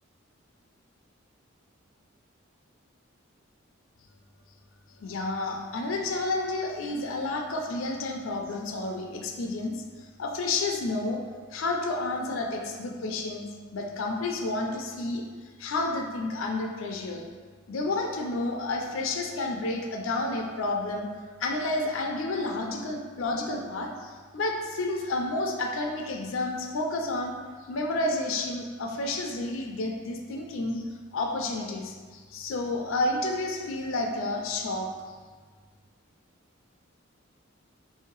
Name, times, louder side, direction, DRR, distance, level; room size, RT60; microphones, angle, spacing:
voice 1, 5.0-9.7 10.2-11.2 11.5-15.2 15.6-17.2 17.7-21.1 21.4-27.3 27.7-30.8 31.1-34.9, left 2 dB, 80° left, 2 dB, 0.5 m, -30 dB
3.2 x 2.8 x 4.5 m, 1.5 s
head